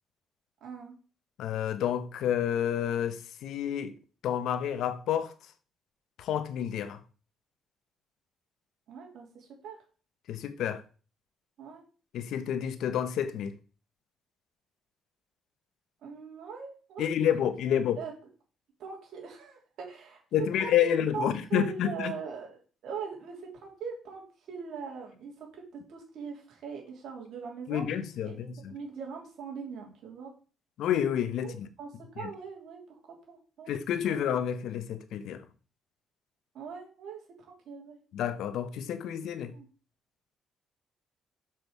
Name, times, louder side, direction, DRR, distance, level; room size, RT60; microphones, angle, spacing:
voice 1, 0.6-0.9 8.9-9.8 11.6-11.8 16.0-17.1 17.7-18.1 18.8-20.2 20.6-25.6 25.9-27.9 28.2-28.4 28.7-30.3 31.4-31.5 31.8-32.8 33.3-33.7 34.1-34.2 36.5-37.2 37.7-38.0 39.5-39.7, right 6 dB, 75° right, 3.2 m, -40 dB
voice 2, 1.4-3.9 4.2-5.3 6.2-7.0 10.3-10.8 12.1-13.6 17.0-18.0 20.3-22.1 27.7-28.7 30.8-31.7 32.2-32.3 33.7-35.4 38.1-39.5, left 9 dB, 80° left, 0.9 m, -29 dB
6.9 x 6.1 x 4.7 m
cardioid pair, 90°, 0 cm